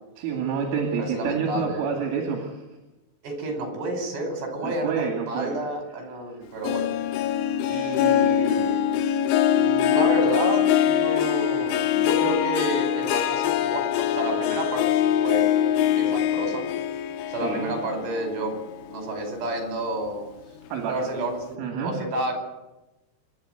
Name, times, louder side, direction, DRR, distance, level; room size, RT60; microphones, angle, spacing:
voice 1, 0.2-2.6 4.6-5.6 17.4-17.7 20.7-21.0 21.6-22.0, right 6 dB, 75° right, 2 dB, 4.9 m, -28 dB
voice 2, 1.0-1.9 3.2-6.9 7.7-8.8 9.5-15.5 15.8-16.7 17.3-18.6 18.9-20.3 20.9-22.3, right 1 dB, 55° right, 4 dB, 6.9 m, -30 dB
Harp, 6.6-19.4 19.8-20.2 20.7-20.8, left 10 dB, 80° left, 3.1 m, -23 dB
26.5 x 12.0 x 9.2 m, 1.0 s
omnidirectional pair, 5.8 m